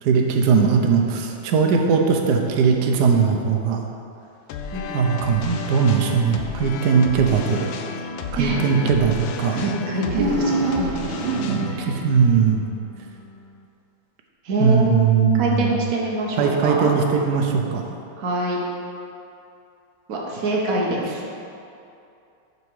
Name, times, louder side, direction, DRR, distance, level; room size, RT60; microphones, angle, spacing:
voice 1, 0.0-3.8 4.9-7.7 8.3-9.6 11.8-12.6 14.6-15.8 16.4-18.0, right 6 dB, 65° right, 2 dB, 1.1 m, -19 dB
sound 1, 4.5-13.7, left 5 dB, 80° left, 1.3 m, -33 dB
voice 2, 4.7-5.1 8.4-8.7 9.5-11.1 11.7-11.9 14.4-16.9 18.2-18.6 20.1-21.3, right 2 dB, 50° right, -2 dB, 1.4 m, -24 dB
sound 2, 10.0-12.0, right 3 dB, 85° right, 1.5 m, -24 dB
8.2 x 5.5 x 4.7 m, 2.6 s
omnidirectional pair, 2.2 m